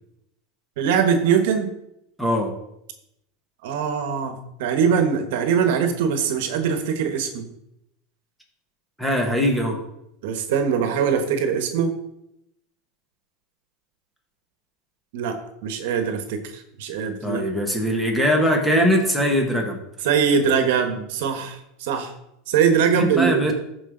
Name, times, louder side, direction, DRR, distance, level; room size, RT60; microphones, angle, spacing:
voice 1, 0.8-1.7 3.6-7.5 10.2-11.9 15.1-17.4 20.0-22.1 22.5-23.5, right 7 dB, 75° right, 7 dB, 1.2 m, -22 dB
voice 2, 2.2-2.5 9.0-9.8 17.2-19.8 22.9-23.5, equal, 5° left, 1 dB, 1.7 m, -21 dB
13.5 x 4.9 x 3.9 m, 0.81 s
supercardioid pair, 140°, 0 cm